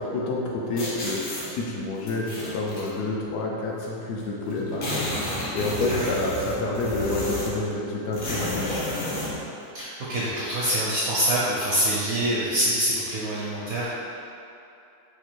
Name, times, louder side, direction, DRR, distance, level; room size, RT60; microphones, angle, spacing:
voice 1, 0.0-8.9, left 2 dB, 70° left, -2 dB, 1.1 m, -29 dB
sound 1, 0.8-1.5 2.1-2.9 3.8-3.9 4.2-4.3 4.5-7.6 8.1-9.3, left 1 dB, 50° left, 0.8 m, -31 dB
voice 2, 9.7-13.9, right 1 dB, 65° right, -7 dB, 0.8 m, -25 dB
4.5 x 2.6 x 4.4 m, 2.7 s
omnidirectional pair, 2.0 m